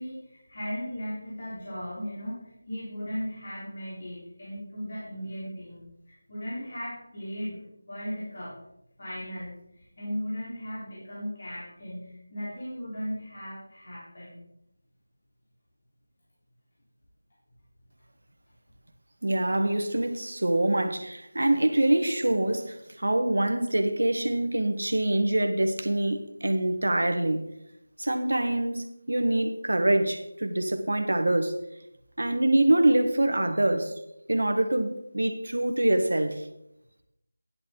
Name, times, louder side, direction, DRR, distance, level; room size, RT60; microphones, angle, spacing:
voice 1, 0.0-5.8 6.3-8.6 9.0-14.4, equal, 50° left, 3.9 m, -37 dB
voice 2, 19.2-27.4 28.0-31.5 32.2-33.9 34.3-36.4, right 1 dB, 80° right, 1.3 m, -25 dB
10.5 x 9.2 x 3.9 m
figure-of-eight pair, 175°, 0 cm